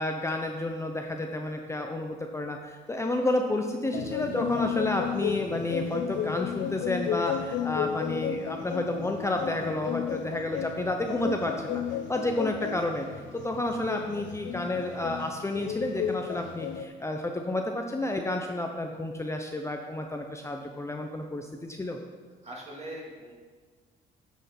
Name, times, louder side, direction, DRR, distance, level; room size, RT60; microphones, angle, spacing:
voice 1, 0.0-11.8 12.1-13.1 13.3-22.0, left 1 dB, 15° left, 3 dB, 0.8 m, -30 dB
sound 1, 3.9-16.8, left 9 dB, 85° left, 0.7 m, -33 dB
voice 2, 22.4-23.3, right 1 dB, 35° right, -3 dB, 2.8 m, -42 dB
10.0 x 6.3 x 5.4 m, 1.5 s
cardioid pair, 95°, 19 cm